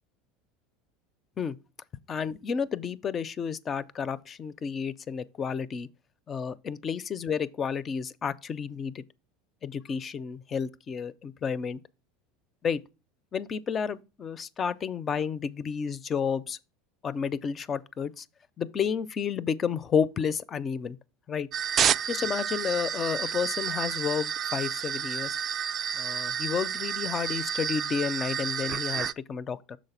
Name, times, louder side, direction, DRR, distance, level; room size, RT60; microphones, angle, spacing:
voice 1, 2.1-5.9 6.3-9.0 9.6-11.8 12.6-12.8 13.3-16.6 17.0-18.3 18.6-21.0 21.3-21.5 22.1-25.4 25.9-29.8, left 6 dB, 30° left, 0.4 m, -31 dB
sound 1, 21.5-29.1, right 8 dB, 40° right, 0.3 m, -30 dB
6.3 x 4.0 x 5.6 m
supercardioid pair, 110°, 0 cm